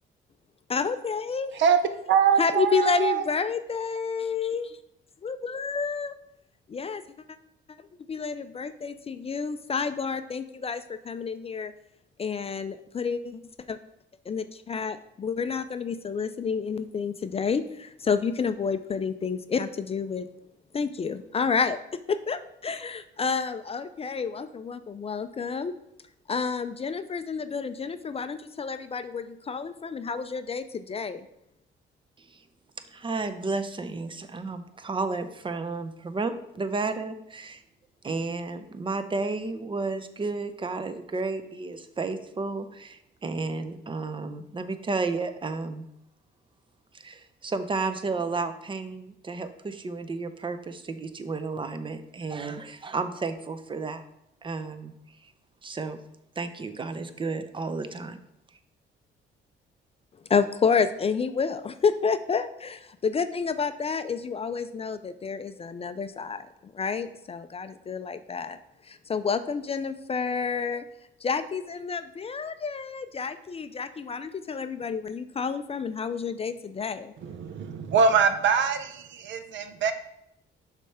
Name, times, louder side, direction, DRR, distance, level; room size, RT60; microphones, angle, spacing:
voice 1, 0.7-1.6 2.4-4.7 5.2-6.1 6.7-7.0 8.1-11.7 12.2-13.4 13.7-13.8 14.3-20.3 20.7-21.8 22.1-25.7 26.3-31.2 60.3-66.4 66.7-68.6 68.9-70.8 71.2-77.1, left 5 dB, 30° left, 11 dB, 0.4 m, -29 dB
voice 2, 2.1-3.3 77.2-79.9, right 6 dB, 70° right, 9 dB, 0.7 m, -23 dB
voice 3, 32.9-37.6 38.0-45.9 46.9-54.0 54.4-54.9 55.2-55.3 55.6-56.0 56.4-58.2, right 3 dB, 25° right, 10 dB, 0.6 m, -32 dB
6.2 x 3.3 x 5.6 m, 0.80 s
cardioid pair, 90°, 20 cm